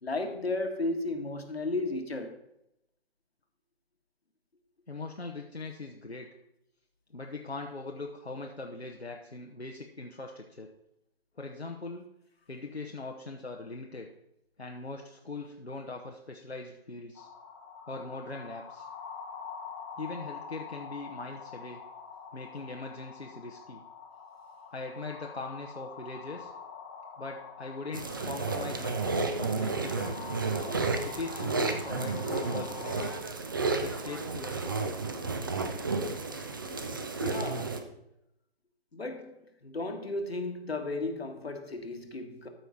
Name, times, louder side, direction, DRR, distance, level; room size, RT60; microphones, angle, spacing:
voice 1, 0.0-2.3 37.2-37.9 38.9-39.3 39.6-42.5, left 2 dB, 75° left, 5 dB, 1.7 m, -34 dB
voice 2, 4.9-6.3 7.1-10.7 11.4-12.2 12.5-14.1 14.6-17.3 17.9-18.9 20.0-21.8 22.3-23.8 24.7-26.5 27.2-30.2 31.0-33.2 33.8-35.0, left 3 dB, 90° left, 1 dB, 1.1 m, -41 dB
sound 1, 17.1-33.2, left 6 dB, 15° left, 0.8 m, -46 dB
sound 2, 27.9-37.8, right 3 dB, 20° right, 0.5 m, -32 dB
13.5 x 4.6 x 5.4 m, 0.82 s
figure-of-eight pair, 140°, 31 cm